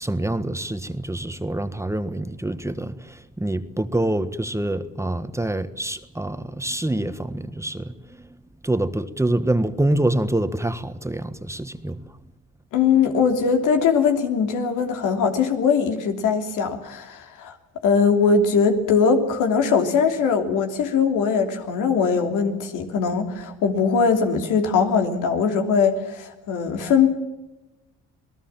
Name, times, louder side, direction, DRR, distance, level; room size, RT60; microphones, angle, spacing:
voice 1, 0.0-7.9 8.6-12.0, right 1 dB, 10° right, 1.5 m, -26 dB
voice 2, 12.7-17.5 17.8-27.1, left 6 dB, 90° left, 3.1 m, -21 dB
27.0 x 18.5 x 7.4 m
cardioid pair, 90°, 30 cm